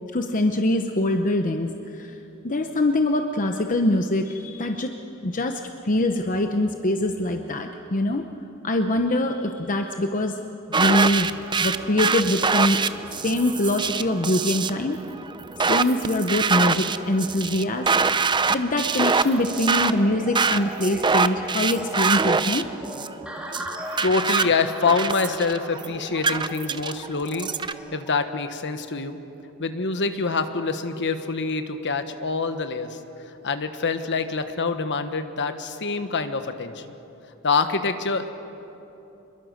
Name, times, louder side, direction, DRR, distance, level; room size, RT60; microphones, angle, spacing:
voice 1, 0.1-2.2 2.4-4.9 5.2-8.2 8.6-10.4 10.7-11.3 11.6-12.8 13.2-15.0 15.7-18.0 18.5-22.6, left 1 dB, 35° left, 5 dB, 0.9 m, -23 dB
sound 1, 10.7-27.7, right 4 dB, 20° right, 0.6 m, -25 dB
sound 2, 19.1-28.2, equal, 5° right, 2.6 m, -39 dB
voice 2, 24.0-27.5 27.9-29.2 29.6-33.0 33.4-36.8 37.4-38.3, left 4 dB, 55° left, 9 dB, 1.3 m, -25 dB
27.5 x 22.0 x 6.5 m, 2.9 s
head